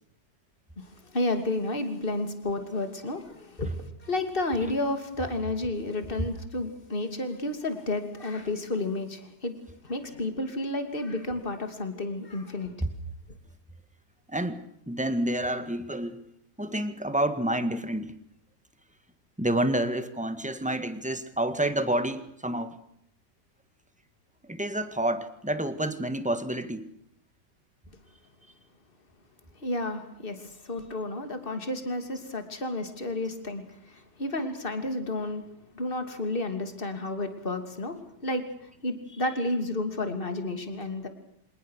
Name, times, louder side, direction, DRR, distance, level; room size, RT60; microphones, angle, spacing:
voice 1, 0.8-9.5 9.8-12.7 29.6-35.4 35.7-41.1, left 2 dB, 30° left, 3.0 m, -31 dB
voice 2, 14.3-16.2 16.6-18.2 19.4-22.8 24.4-26.9, right 1 dB, 5° right, 1.7 m, -29 dB
26.5 x 20.0 x 6.6 m
omnidirectional pair, 1.8 m